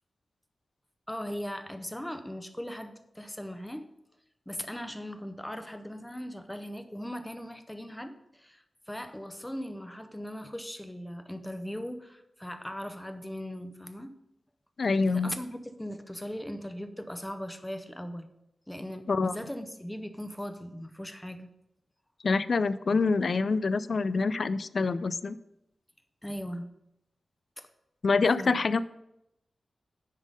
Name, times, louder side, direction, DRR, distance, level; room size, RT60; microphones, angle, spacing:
voice 1, 1.1-3.9 4.5-14.1 15.1-18.3 18.7-21.5 26.2-26.7 27.6-27.7 28.4-28.6, equal, 5° left, 8 dB, 0.7 m, -39 dB
voice 2, 14.8-15.3 19.1-19.4 22.2-25.4 28.0-28.8, left 4 dB, 55° left, 16 dB, 0.3 m, -26 dB
9.8 x 3.6 x 5.3 m, 0.83 s
wide cardioid pair, 110°, 0 cm